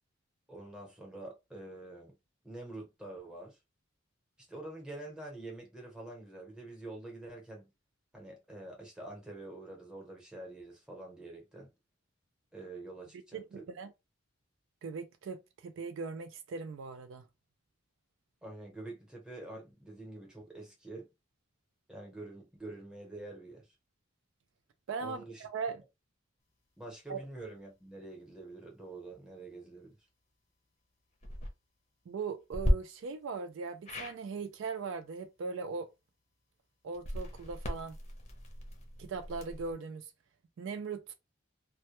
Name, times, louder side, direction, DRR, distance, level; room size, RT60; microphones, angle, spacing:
voice 1, 0.5-2.2 2.4-3.6 4.5-7.7 8.1-11.7 12.5-13.7 18.4-21.1 21.9-23.7 25.0-25.5 26.8-29.9, right 2 dB, 5° right, 0.8 m, -46 dB
voice 2, 13.3-13.9 14.8-17.2 24.9-25.8 27.1-27.2 32.1-35.9 36.8-38.0 39.0-40.1 40.6-41.1, right 5 dB, 65° right, 0.3 m, -39 dB
sound 1, 31.1-31.5 32.5-32.7 33.8-34.2 36.9-39.7, equal, 35° left, 0.6 m, -34 dB
2.1 x 2.1 x 2.9 m
head